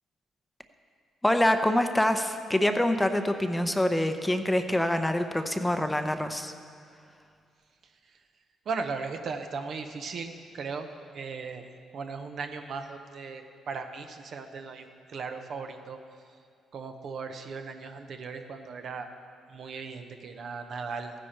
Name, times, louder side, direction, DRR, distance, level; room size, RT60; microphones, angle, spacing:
voice 1, 1.2-6.5, left 1 dB, 10° left, 7 dB, 0.7 m, -25 dB
voice 2, 8.6-10.9 11.1-11.7 11.9-16.0 16.7-19.1 19.5-21.1, right 4 dB, 60° right, 6 dB, 0.9 m, -37 dB
15.0 x 10.0 x 4.4 m, 2.2 s
cardioid pair, 90°, 0 cm